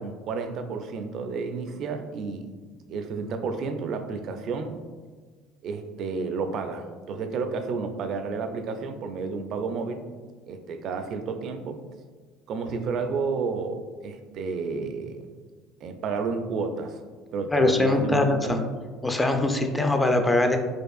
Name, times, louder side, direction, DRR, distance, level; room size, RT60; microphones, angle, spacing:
voice 1, 0.0-2.5 2.9-4.8 5.6-10.0 10.5-11.8 12.5-15.3 15.8-17.0 17.3-18.6, right 4 dB, 55° right, 7 dB, 0.4 m, -31 dB
voice 2, 17.5-18.7 19.0-20.6, left 2 dB, 15° left, 5 dB, 0.4 m, -22 dB
4.4 x 2.4 x 2.4 m, 1.4 s
supercardioid pair, 85°, 0 cm